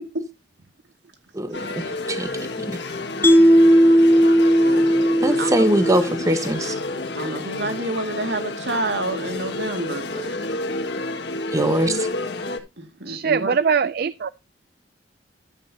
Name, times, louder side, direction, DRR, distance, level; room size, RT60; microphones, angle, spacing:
voice 1, 1.3-2.3 2.6-2.7 5.2-6.8 11.5-12.1, right 1 dB, 20° right, 1.1 m, -22 dB
sound 1, 1.5-12.6, left 2 dB, 75° left, 1.9 m, -30 dB
Mallet percussion, 3.2-6.5, equal, 10° left, 0.7 m, -16 dB
voice 2, 4.5-5.8 7.2-10.4 12.8-13.6, right 2 dB, 85° right, 2.3 m, -29 dB
voice 3, 13.1-14.3, right 6 dB, 60° right, 0.4 m, -22 dB
12.5 x 8.4 x 2.8 m
head